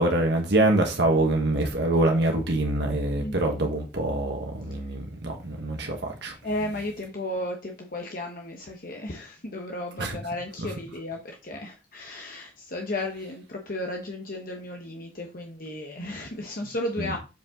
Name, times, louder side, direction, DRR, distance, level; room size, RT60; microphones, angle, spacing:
voice 1, 0.0-6.3 10.0-10.2 10.6-10.7 17.0-17.1, right 2 dB, 60° right, 1.4 m, -25 dB
voice 2, 3.2-3.7 6.4-17.2, left 1 dB, 50° left, 1.0 m, -34 dB
7.4 x 5.2 x 3.7 m
head